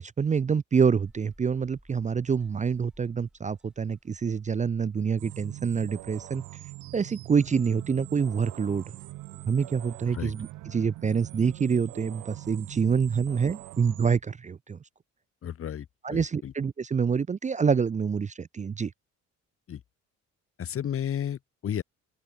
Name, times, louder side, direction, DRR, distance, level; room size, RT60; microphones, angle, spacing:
voice 1, 0.0-6.4 6.9-9.0 9.5-14.8 16.0-18.9, right 6 dB, 25° right, 0.5 m, -26 dB
sound 1, 1.0-13.8, equal, ahead, 6.0 m, -64 dB
sound 2, 5.2-14.2, right 18 dB, 85° right, 0.7 m, -43 dB
voice 2, 15.4-16.5 19.7-19.8 20.6-21.8, left 9 dB, 45° left, 1.0 m, -33 dB
open air
cardioid pair, 90°, 30 cm